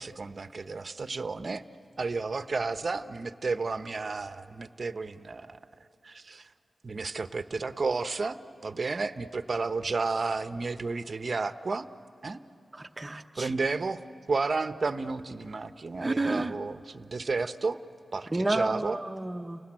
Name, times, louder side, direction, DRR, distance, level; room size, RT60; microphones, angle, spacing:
voice 1, 0.0-1.6 2.0-5.6 6.0-6.5 6.8-8.4 8.6-11.9 12.2-12.4 13.4-17.8 18.1-19.0, right 4 dB, 50° right, 11 dB, 0.9 m, -32 dB
voice 2, 12.7-13.5 16.0-16.6 18.3-19.6, right 2 dB, 20° right, 5 dB, 0.9 m, -30 dB
30.0 x 19.0 x 8.8 m, 3.0 s
wide cardioid pair, 90°, 0 cm